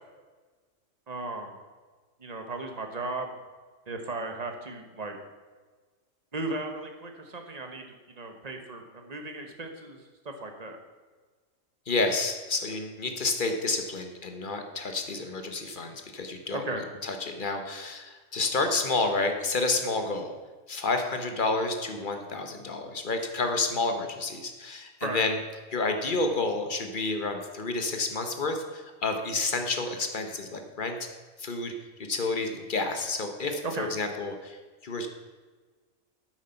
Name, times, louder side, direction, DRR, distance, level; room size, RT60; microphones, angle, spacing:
voice 1, 1.1-1.5 2.2-3.3 3.9-5.2 6.3-10.0 10.2-10.8 16.5-16.9 25.0-25.2 33.6-33.9, right 2 dB, 30° right, 4 dB, 1.2 m, -36 dB
voice 2, 11.9-20.3 20.7-25.4 25.7-31.0 31.4-31.7 32.1-34.6 34.8-35.1, left 3 dB, 40° left, 5 dB, 1.1 m, -30 dB
9.3 x 7.6 x 5.7 m, 1.4 s
omnidirectional pair, 1.4 m